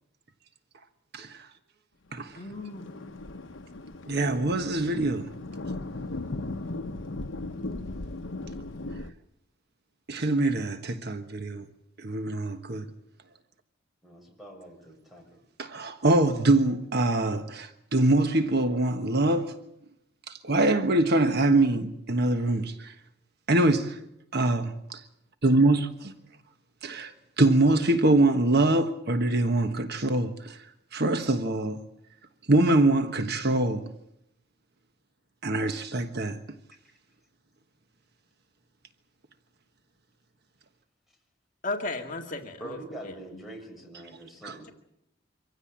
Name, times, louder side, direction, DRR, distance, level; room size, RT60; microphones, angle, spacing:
Thunder, 2.2-9.1, left 2 dB, 80° left, 1.0 m, -37 dB
voice 1, 2.3-3.1 41.6-42.8 43.0-43.4, left 2 dB, 45° left, 2.1 m, -35 dB
voice 2, 4.1-5.3 10.1-11.7 12.0-12.9 15.6-19.5 20.3-22.9 23.5-24.0 24.3-25.0 25.4-26.1 27.0-27.1 27.4-30.6 30.9-31.8 32.5-33.8 35.4-36.4 44.4-44.5, right 2 dB, 60° right, 1.4 m, -24 dB
voice 3, 14.0-15.3 42.6-44.7, right 1 dB, ahead, 6.8 m, -44 dB
25.0 x 16.0 x 8.7 m
head